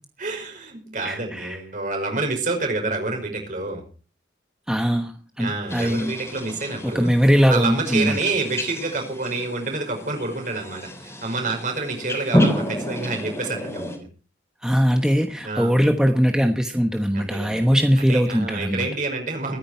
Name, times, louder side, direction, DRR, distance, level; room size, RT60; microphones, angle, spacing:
voice 1, 0.2-3.8 5.4-7.1 7.5-14.1 15.4-15.8 17.1-19.6, right 3 dB, 45° right, 3 dB, 5.6 m, -28 dB
voice 2, 1.0-1.6 4.7-6.2 6.8-8.2 14.6-18.9, equal, 5° right, 5 dB, 1.1 m, -20 dB
sound 1, 5.7-14.0, equal, 15° left, 3.7 m, -29 dB
22.5 x 10.0 x 4.5 m, 0.37 s
head